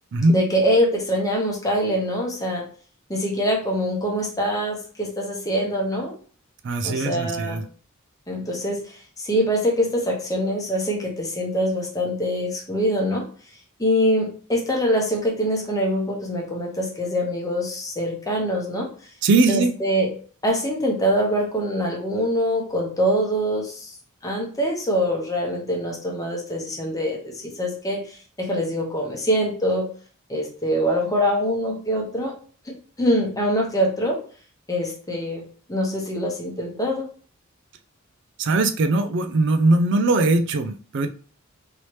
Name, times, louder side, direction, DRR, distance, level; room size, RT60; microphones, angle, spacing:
voice 1, 0.3-2.7 3.1-6.1 6.8-7.6 8.3-13.3 13.8-18.9 19.5-20.1 20.4-23.9 24.2-29.9 30.3-32.3 32.7-34.2 34.7-37.1, equal, 15° left, 0 dB, 0.8 m, -24 dB
voice 2, 6.6-7.6 19.2-19.8 38.4-41.1, right 2 dB, 55° right, 7 dB, 0.4 m, -20 dB
3.1 x 2.8 x 3.1 m, 0.41 s
head